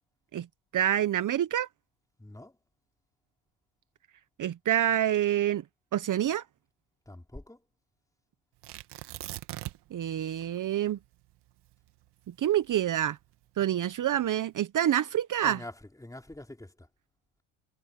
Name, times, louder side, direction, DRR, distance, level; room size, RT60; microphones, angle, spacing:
voice 1, 0.7-1.7 4.4-5.6 5.9-6.4 9.9-11.0 12.3-13.2 13.6-15.6, right 11 dB, 45° right, 1.0 m, -27 dB
voice 2, 2.2-2.6 7.1-7.6 15.4-15.7 16.0-16.9, left 1 dB, 10° left, 3.7 m, -45 dB
Tearing, 8.6-10.0 10.3-10.4 11.0-13.3 14.0-14.5, right 16 dB, 70° right, 2.1 m, -41 dB
supercardioid pair, 75°, 43 cm